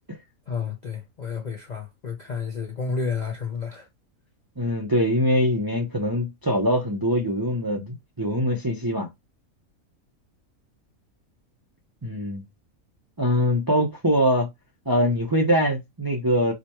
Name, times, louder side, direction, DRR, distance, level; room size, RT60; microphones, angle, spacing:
voice 1, 0.5-3.9, left 5 dB, 50° left, 0.5 m, -31 dB
voice 2, 4.6-9.1 12.0-12.4 13.2-14.5 14.9-16.5, equal, 25° right, 0.5 m, -23 dB
4.9 x 2.2 x 2.9 m
omnidirectional pair, 1.5 m